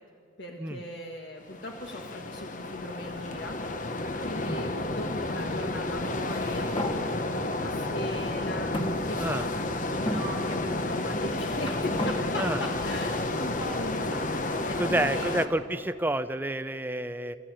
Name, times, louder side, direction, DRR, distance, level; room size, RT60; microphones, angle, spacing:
voice 1, 0.4-3.6 4.2-8.7 9.0-15.7, left 1 dB, 65° left, 1 dB, 1.6 m, -39 dB
sound 1, 1.5-15.5, left 2 dB, 40° left, 1.1 m, -31 dB
sound 2, 6.1-7.0 7.8-7.9 8.7-9.6 10.1-10.3 11.1-12.2, left 1 dB, 25° left, 1.4 m, -34 dB
voice 2, 14.8-17.4, right 1 dB, 10° right, 11 dB, 0.6 m, -29 dB
28.5 x 14.5 x 9.3 m, 2.6 s
head